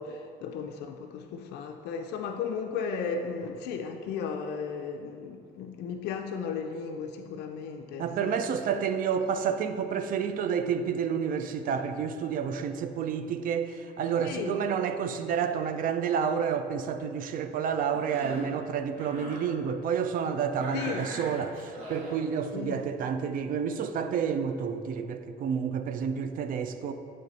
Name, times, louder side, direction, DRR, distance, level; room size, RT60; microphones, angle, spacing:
voice 1, 0.0-8.4 14.2-14.6 20.7-21.1 22.5-22.8, left 6 dB, 80° left, 4 dB, 0.4 m, -35 dB
voice 2, 8.0-26.9, right 7 dB, 55° right, 9 dB, 0.4 m, -30 dB
Cough, 17.9-18.5 18.9-19.5 20.6-22.2, right 1 dB, 80° right, 1.5 m, -41 dB
7.6 x 3.2 x 4.0 m, 2.4 s
cardioid pair, 110°, 17 cm